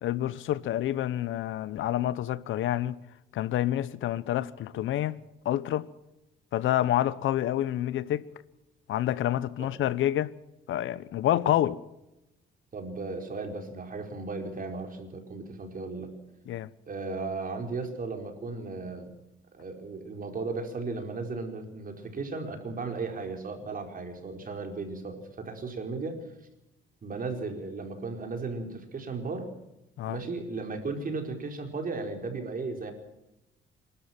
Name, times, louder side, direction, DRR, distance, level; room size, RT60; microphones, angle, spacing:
voice 1, 0.0-3.0 3.3-5.2 5.4-5.9 6.5-8.3 8.9-10.3 10.7-11.8 16.5-16.7 30.0-30.2, left 12 dB, 80° left, 1.1 m, -28 dB
voice 2, 12.7-16.1 16.9-19.1 19.6-26.2 27.0-29.5 30.1-32.9, right 3 dB, 45° right, 4.8 m, -35 dB
27.5 x 13.0 x 7.5 m
cardioid pair, 90°, 20 cm